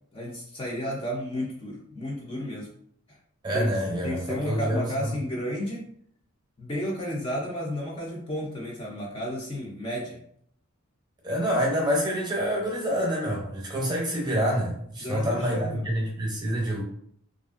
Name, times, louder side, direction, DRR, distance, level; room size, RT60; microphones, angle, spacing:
voice 1, 0.1-2.7 3.1-3.2 3.5-3.7 4.0-5.9 6.6-10.2 15.0-15.8, equal, 25° left, -3 dB, 0.4 m, -32 dB
voice 2, 3.4-5.1 11.2-16.8, equal, 20° right, -1 dB, 0.7 m, -27 dB
2.8 x 2.4 x 2.4 m, 0.66 s
head